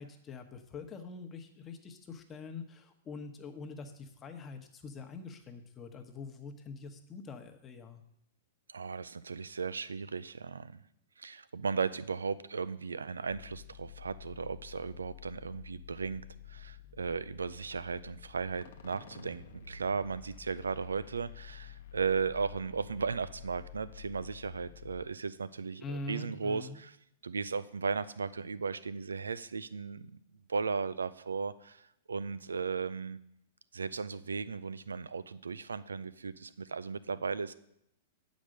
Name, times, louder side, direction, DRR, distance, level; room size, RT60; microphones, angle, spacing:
voice 1, 0.0-8.0 25.8-26.8, left 3 dB, 25° left, 5 dB, 1.1 m, -44 dB
voice 2, 8.7-10.8 11.2-26.9 27.2-30.2 30.5-33.2 33.7-37.5, right 5 dB, 85° right, 15 dB, 0.4 m, -36 dB
sound 1, 13.3-25.1, left 10 dB, 65° left, 0.8 m, -50 dB
8.6 x 5.2 x 6.5 m, 0.76 s
hypercardioid pair, 105°, 0 cm